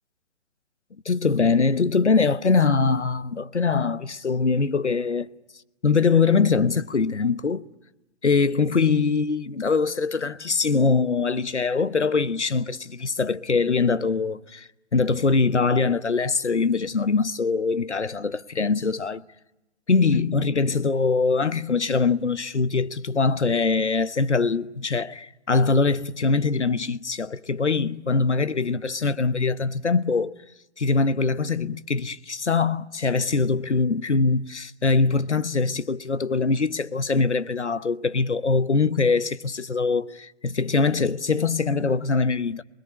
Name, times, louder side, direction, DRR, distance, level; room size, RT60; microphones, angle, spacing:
voice 1, 1.0-5.3 5.8-7.6 8.2-19.2 19.9-30.4 30.8-42.6, left 4 dB, 75° left, 1.1 m, -23 dB
28.0 x 21.0 x 9.8 m
figure-of-eight pair, 135°, 35 cm